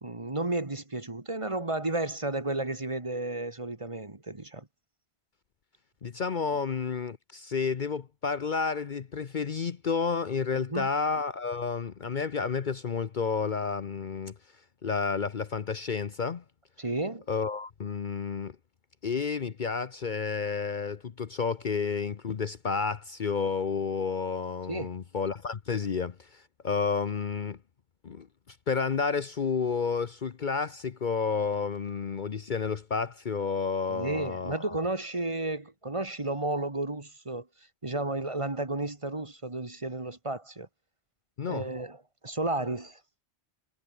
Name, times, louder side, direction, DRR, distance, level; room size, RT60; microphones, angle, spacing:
voice 1, 0.0-4.7 10.7-10.9 16.8-17.2 24.7-24.9 33.9-37.5 37.8-40.7 41.4-42.0 42.2-43.0, right 2 dB, 30° right, 1.7 m, -32 dB
voice 2, 6.0-14.3 14.8-16.4 17.3-18.5 19.0-27.6 28.0-34.8 41.4-41.6, left 5 dB, 50° left, 0.9 m, -31 dB
omnidirectional pair, 1.1 m